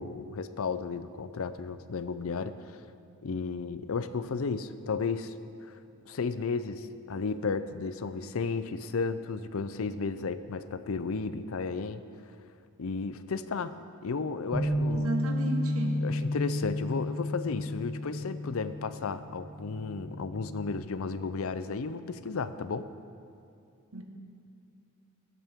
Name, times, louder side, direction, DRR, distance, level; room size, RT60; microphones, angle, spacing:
voice 1, 0.0-2.8 3.2-5.3 5.6-5.7 6.1-12.0 12.8-13.7 14.0-15.2 16.0-22.9, left 4 dB, 65° left, 12 dB, 0.5 m, -33 dB
Bass guitar, 14.5-20.8, left 1 dB, 5° left, 2.7 m, -32 dB
voice 2, 14.9-16.0 23.9-24.0, right 2 dB, 70° right, 3 dB, 1.3 m, -33 dB
20.0 x 8.4 x 3.6 m, 2.5 s
head